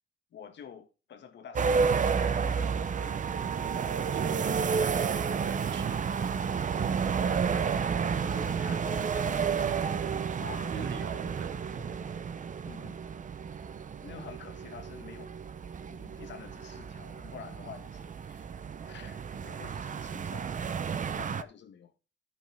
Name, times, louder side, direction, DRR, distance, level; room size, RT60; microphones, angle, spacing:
voice 1, 0.3-3.2 7.2-11.1 12.6-13.0 14.0-15.3 15.8-18.5 18.9-20.5 21.2-21.9, left 8 dB, 65° left, 1.7 m, -48 dB
sound 1, 1.6-21.4, right 6 dB, 40° right, 0.8 m, -31 dB
voice 2, 3.7-6.3 10.7-12.0 20.7-21.3, right 6 dB, 70° right, 1.8 m, -43 dB
13.0 x 6.0 x 3.5 m
cardioid pair, 90°, 20 cm